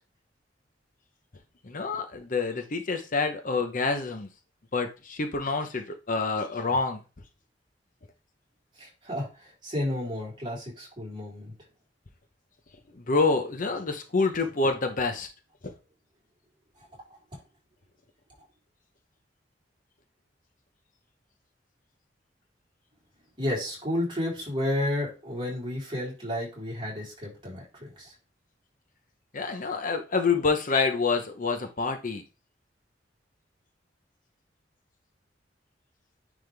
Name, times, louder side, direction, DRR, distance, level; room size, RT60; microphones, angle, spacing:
voice 1, 1.6-4.3 4.7-7.0 13.0-15.3 29.3-32.2, left 4 dB, 45° left, 0.8 m, -27 dB
voice 2, 8.7-11.5 16.8-16.9 17.3-17.4 23.4-28.1, left 1 dB, 25° right, 4.0 m, -32 dB
9.5 x 3.6 x 3.4 m
head